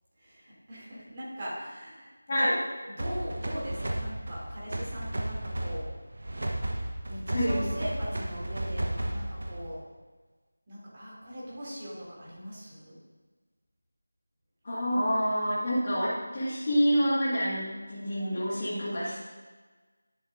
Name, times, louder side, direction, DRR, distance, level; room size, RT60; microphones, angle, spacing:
voice 1, 0.2-2.5 2.9-5.9 7.1-9.8 10.7-13.0, equal, 25° right, -7 dB, 2.4 m, -40 dB
sound 1, 3.0-9.8, right 1 dB, 55° right, 1.0 m, -33 dB
voice 2, 7.3-7.7 14.6-19.3, equal, 30° left, -10 dB, 1.7 m, -27 dB
10.5 x 7.1 x 2.5 m, 1.3 s
figure-of-eight pair, 175°, 0 cm